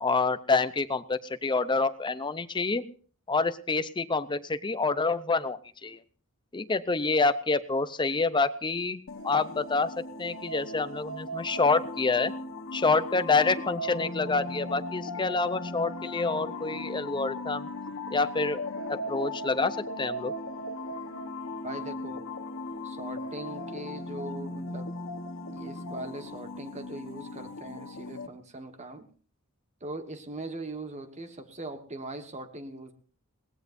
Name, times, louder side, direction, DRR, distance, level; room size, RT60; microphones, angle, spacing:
voice 1, 0.0-2.9 3.3-6.0 6.5-12.3 12.7-17.7 18.1-18.6 18.9-20.3, left 3 dB, 20° left, 13 dB, 0.6 m, -27 dB
sound 1, 9.1-28.3, left 2 dB, 60° left, 1.2 m, -38 dB
voice 2, 21.6-22.2 22.8-24.9 25.5-29.1 29.8-32.9, right 2 dB, 30° right, 8 dB, 1.4 m, -40 dB
21.5 x 18.0 x 2.6 m, 0.42 s
head